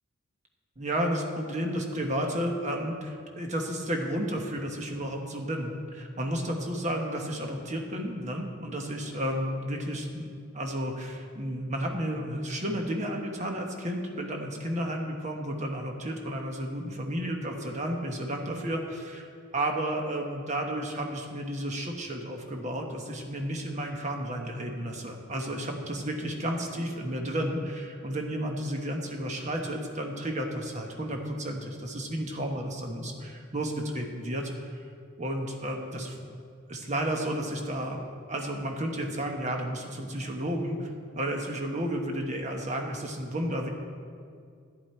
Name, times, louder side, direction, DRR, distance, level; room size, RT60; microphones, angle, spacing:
voice 1, 0.8-19.3 19.5-34.7 35.2-36.2 36.7-38.0 38.3-40.9 41.1-43.7, right 1 dB, 35° right, 2 dB, 1.2 m, -32 dB
11.5 x 9.9 x 4.4 m, 2.3 s
head